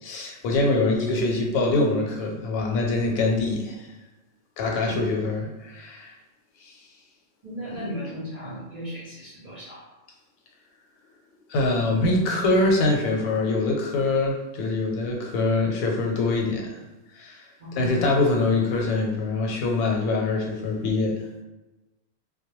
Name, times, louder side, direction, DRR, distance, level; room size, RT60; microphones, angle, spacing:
voice 1, 0.0-3.9 4.6-6.1 6.6-6.8 11.5-16.8 17.1-17.4 17.7-21.3, left 2 dB, 85° left, 1 dB, 1.0 m, -24 dB
voice 2, 7.4-9.9 17.6-18.1, left 1 dB, 50° right, -8 dB, 0.5 m, -35 dB
2.2 x 2.2 x 2.9 m, 1.1 s
omnidirectional pair, 1.4 m